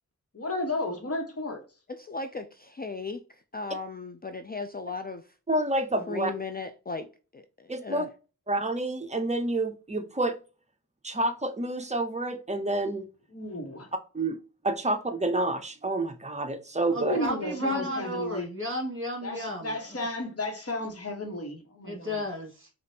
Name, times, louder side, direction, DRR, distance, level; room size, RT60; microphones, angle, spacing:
voice 1, 0.3-1.6 13.3-13.9 16.9-18.5 19.2-22.2, left 2 dB, 45° left, 1.3 m, -33 dB
voice 2, 1.9-5.3 6.1-8.1 17.6-17.9, left 4 dB, 30° left, 0.4 m, -36 dB
voice 3, 5.5-6.3 7.7-8.1 8.5-10.4 11.0-13.1 14.1-14.4 14.6-17.2, right 2 dB, 20° right, 0.7 m, -28 dB
voice 4, 16.9-19.7 21.8-22.7, equal, 35° right, 1.9 m, -33 dB
5.0 x 2.5 x 2.8 m
wide cardioid pair, 60°, 34 cm